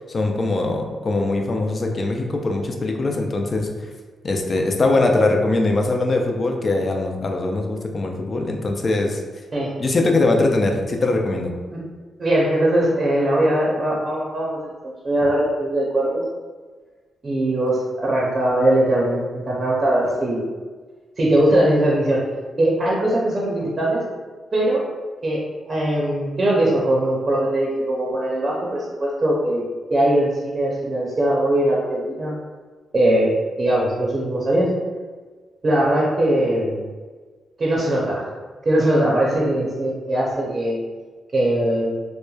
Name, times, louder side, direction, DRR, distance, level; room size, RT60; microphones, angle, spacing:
voice 1, 0.1-3.7 4.2-9.2 9.8-11.5, left 2 dB, 45° left, 2 dB, 0.4 m, -21 dB
voice 2, 12.2-16.2 17.2-20.4 21.2-22.3 22.6-24.1 24.5-24.9 25.2-29.6 29.9-32.4 32.9-34.7 35.6-36.8 37.6-38.3 38.6-40.8 41.3-41.9, right 1 dB, 40° right, -4 dB, 0.6 m, -20 dB
3.0 x 2.1 x 2.3 m, 1.4 s
cardioid pair, 65°, 0 cm